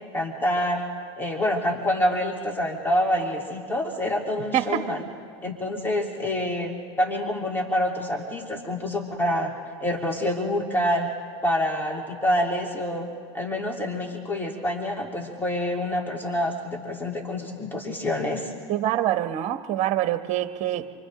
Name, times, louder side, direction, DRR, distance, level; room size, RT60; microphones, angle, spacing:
voice 1, 0.1-0.9 1.2-5.1 5.4-9.5 9.8-11.1 11.4-13.1 13.3-18.5, left 1 dB, 15° left, 0 dB, 3.6 m, -27 dB
voice 2, 4.5-4.9 18.7-20.9, right 12 dB, 50° right, 9 dB, 1.3 m, -25 dB
28.5 x 24.5 x 3.8 m, 2.2 s
supercardioid pair, 100°, 15 cm